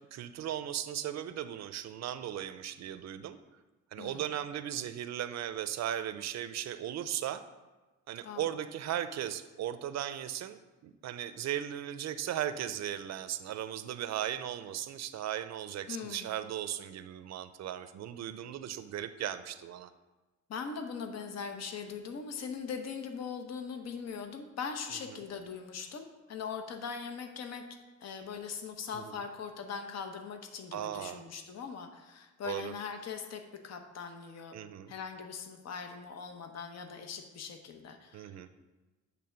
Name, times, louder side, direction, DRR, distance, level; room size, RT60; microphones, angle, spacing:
voice 1, 0.1-3.4 3.9-7.4 8.1-19.9 28.9-29.1 30.7-31.2 32.4-32.7 34.5-34.9 38.1-38.5, right 11 dB, 60° right, 12 dB, 0.5 m, -37 dB
voice 2, 15.9-16.3 20.5-34.5 34.9-38.3, left 6 dB, 60° left, 6 dB, 0.9 m, -41 dB
8.6 x 3.5 x 5.8 m, 1.2 s
cardioid pair, 90°, 30 cm